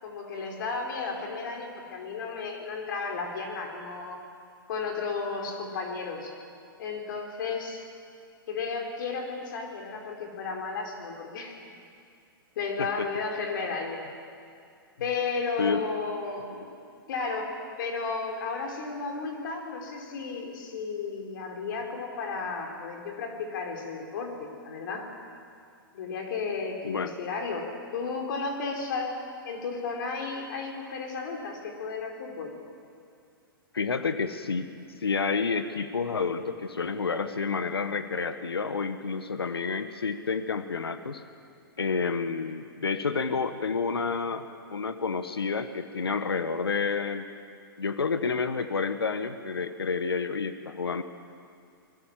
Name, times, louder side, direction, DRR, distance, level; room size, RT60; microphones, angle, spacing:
voice 1, 0.0-4.2 4.7-6.3 6.8-7.9 8.5-11.6 12.6-14.0 15.0-16.7 17.1-25.1 25.9-32.5, left 4 dB, 60° left, 2 dB, 4.8 m, -33 dB
voice 2, 33.7-34.7 35.0-41.2 41.8-47.3 47.8-51.0, left 5 dB, 85° left, 10 dB, 1.4 m, -29 dB
28.0 x 21.5 x 7.5 m, 2.4 s
hypercardioid pair, 115°, 12 cm